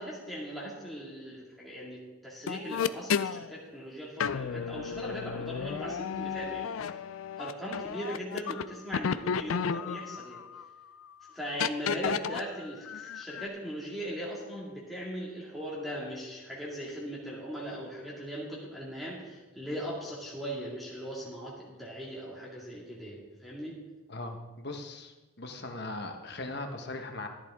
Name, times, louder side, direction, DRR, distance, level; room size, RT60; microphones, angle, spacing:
voice 1, 0.0-7.0 7.4-10.4 11.3-23.8, equal, ahead, -6 dB, 2.1 m, -39 dB
sound 1, 2.5-3.5 4.2-8.6 8.9-10.7 11.6-12.4 12.9-13.5, left 7 dB, 85° left, 0.4 m, -32 dB
voice 2, 24.1-27.3, left 2 dB, 55° left, 4 dB, 1.3 m, -39 dB
14.0 x 11.0 x 3.6 m, 1.2 s
head